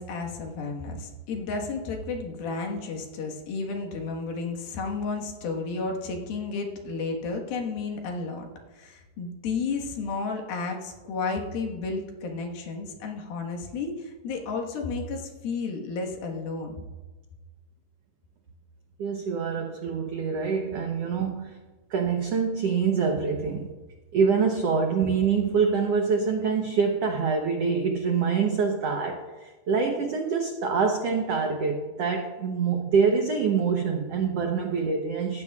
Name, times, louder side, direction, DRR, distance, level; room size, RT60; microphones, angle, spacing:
voice 1, 0.0-8.5 8.7-16.9, left 4 dB, 80° left, 1 dB, 3.3 m, -32 dB
voice 2, 19.0-21.6 21.9-23.7 24.1-35.4, right 5 dB, 80° right, 3 dB, 1.4 m, -25 dB
17.5 x 14.5 x 2.4 m, 1.2 s
omnidirectional pair, 4.2 m